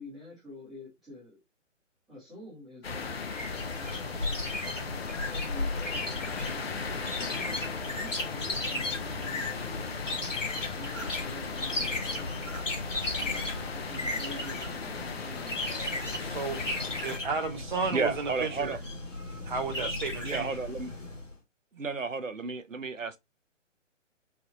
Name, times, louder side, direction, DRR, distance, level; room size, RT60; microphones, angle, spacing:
voice 1, 0.0-1.4 2.1-3.1 3.8-4.4 5.1-9.9 10.7-12.5 13.2-15.6 16.0-16.3, left 1 dB, ahead, 0.7 m, -48 dB
sound 1, 2.8-17.2, left 5 dB, 50° left, 0.6 m, -38 dB
sound 2, 3.3-21.3, left 2 dB, 75° left, 1.9 m, -36 dB
sound 3, 4.6-13.7, left 2 dB, 35° left, 1.1 m, -48 dB
voice 2, 16.2-16.6 17.0-18.8 19.4-20.6, right 4 dB, 40° right, 1.0 m, -33 dB
voice 3, 17.9-18.8 20.2-20.9 21.7-23.2, right 4 dB, 80° right, 0.8 m, -32 dB
4.7 x 2.2 x 2.8 m
figure-of-eight pair, 140°, 38 cm